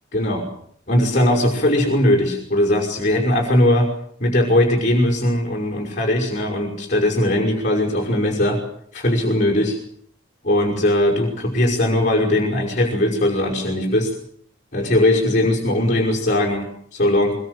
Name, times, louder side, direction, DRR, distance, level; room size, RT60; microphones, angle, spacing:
voice 1, 0.1-0.5 0.9-3.9 4.2-8.6 8.9-9.8 10.4-14.1 14.7-17.3, left 1 dB, 40° left, -2 dB, 5.5 m, -19 dB
23.5 x 22.0 x 8.0 m, 0.63 s
head